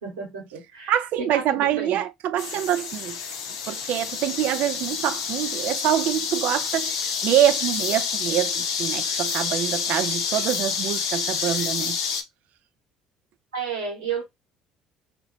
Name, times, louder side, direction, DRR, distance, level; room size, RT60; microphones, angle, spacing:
voice 1, 0.0-2.0 13.5-14.2, right 6 dB, 85° right, 1.6 m, -32 dB
voice 2, 0.9-3.2 3.7-12.0, right 12 dB, 65° right, 0.4 m, -25 dB
sound 1, 2.4-12.2, left 6 dB, 80° left, 0.7 m, -28 dB
3.0 x 2.9 x 2.6 m
hypercardioid pair, 60°, 3 cm